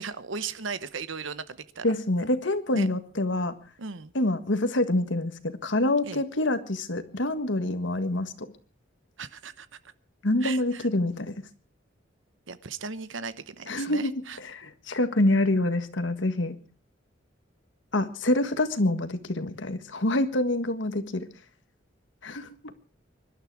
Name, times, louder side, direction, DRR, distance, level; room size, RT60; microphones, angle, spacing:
voice 1, 0.0-1.9 2.7-2.9 3.8-4.1 6.0-6.2 9.2-9.7 10.4-10.9 12.5-14.4, right 5 dB, 80° right, 14 dB, 1.0 m, -37 dB
voice 2, 1.8-3.6 4.2-8.5 10.2-11.4 13.7-16.6 17.9-21.3 22.2-22.5, left 1 dB, 70° left, 10 dB, 1.7 m, -26 dB
25.0 x 12.0 x 4.8 m, 0.37 s
head